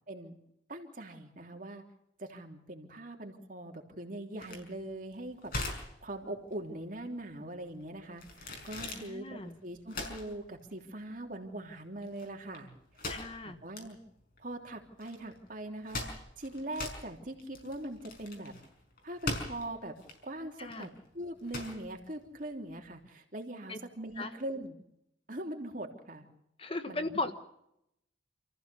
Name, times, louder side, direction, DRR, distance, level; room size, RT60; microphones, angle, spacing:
voice 1, 0.7-1.8 2.2-5.5 6.0-12.7 13.0-13.1 13.4-14.0 14.4-18.5 19.0-19.9 20.2-24.8 25.3-26.2 26.9-27.2, right 1 dB, 45° right, 3 dB, 3.2 m, -42 dB
sound 1, 4.4-22.9, left 2 dB, 50° left, 5.5 m, -42 dB
voice 2, 8.9-9.6 13.1-13.6 20.6-20.9 23.7-23.8 24.2-24.3 26.6-27.3, left 2 dB, 30° left, 9 dB, 1.1 m, -37 dB
28.5 x 15.0 x 7.0 m, 0.80 s
head